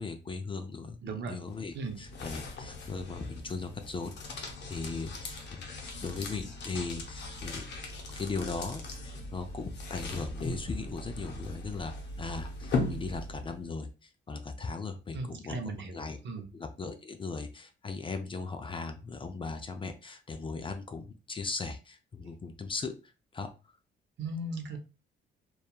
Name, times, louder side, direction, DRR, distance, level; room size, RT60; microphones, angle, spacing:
voice 1, 0.0-7.6 8.2-16.2 16.5-23.0 23.3-23.5, left 4 dB, 25° left, 6 dB, 0.4 m, -38 dB
voice 2, 1.0-1.4 1.7-2.0 15.1-16.0 16.2-16.5 24.2-24.8, right 3 dB, 65° right, 5 dB, 0.7 m, -37 dB
sound 1, 1.5-13.6, left 2 dB, 60° left, 0.7 m, -39 dB
2.7 x 2.3 x 2.2 m, 0.32 s
cardioid pair, 90°, 20 cm